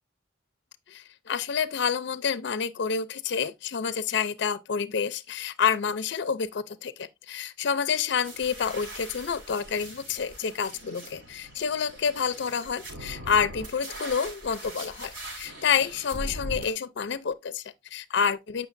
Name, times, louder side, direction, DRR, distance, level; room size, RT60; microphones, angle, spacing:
voice 1, 0.9-18.7, left 6 dB, 60° left, 0.4 m, -28 dB
sound 1, 8.2-16.7, equal, 70° right, 3.6 m, -41 dB
8.1 x 5.7 x 2.5 m
head